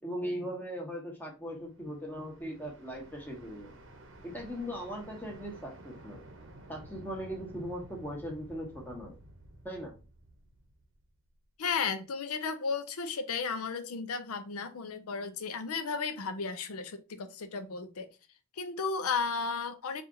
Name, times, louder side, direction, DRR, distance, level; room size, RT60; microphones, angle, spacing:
voice 1, 0.0-3.8 4.2-6.2 6.7-9.1 9.6-9.9, equal, 10° left, 1.1 m, -39 dB
sound 1, 1.5-11.4, right 1 dB, 55° right, 0.8 m, -52 dB
voice 2, 11.6-18.1 18.6-20.0, left 5 dB, 85° left, 0.6 m, -34 dB
4.2 x 2.5 x 3.7 m
head